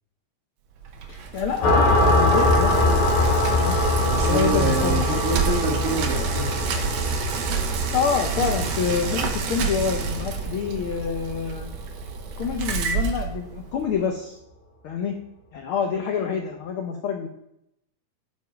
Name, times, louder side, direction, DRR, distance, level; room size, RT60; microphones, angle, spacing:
Bicycle, 0.8-14.0, right 5 dB, 70° right, 2.0 m, -29 dB
voice 1, 1.1-3.0 3.5-5.2 7.9-11.7 12.4-14.4 14.8-15.1 15.5-17.3, left 6 dB, 90° left, 4 dB, 1.1 m, -27 dB
sound 1, 1.6-10.9, left 1 dB, 65° left, 3.4 m, -23 dB
voice 2, 4.0-6.5, right 3 dB, 35° right, -1 dB, 1.8 m, -27 dB
8.0 x 5.2 x 5.0 m, 0.79 s
omnidirectional pair, 3.4 m